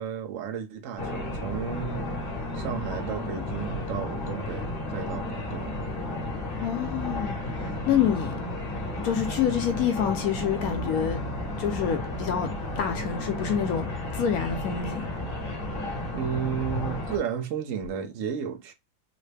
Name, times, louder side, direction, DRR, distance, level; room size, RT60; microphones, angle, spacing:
voice 1, 0.0-5.8 16.1-18.7, right 8 dB, 60° right, 0.8 m, -33 dB
sound 1, 1.0-17.2, left 1 dB, 40° left, 0.9 m, -33 dB
voice 2, 6.6-7.4 7.9-8.3 9.0-11.2 11.5-12.5 12.8-13.9 14.1-15.1, left 8 dB, 65° left, 0.9 m, -27 dB
3.8 x 2.1 x 3.3 m
omnidirectional pair, 2.1 m